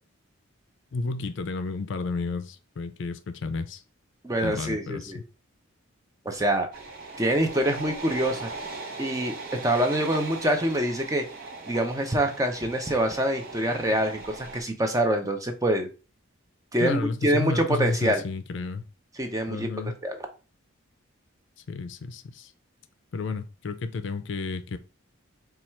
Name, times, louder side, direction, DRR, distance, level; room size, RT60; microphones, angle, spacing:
voice 1, 0.9-3.8 4.4-5.2 16.8-18.8 19.5-20.0 21.7-22.5 23.1-24.8, left 3 dB, 60° left, 0.4 m, -31 dB
voice 2, 4.2-5.2 6.3-6.7 7.2-8.5 9.0-9.4 9.6-11.2 11.7-15.9 16.7-18.2 19.2-19.7 20.0-20.2, right 1 dB, 15° right, 0.5 m, -25 dB
sound 1, 6.7-14.6, right 3 dB, 45° right, 0.9 m, -39 dB
4.3 x 2.3 x 4.3 m
head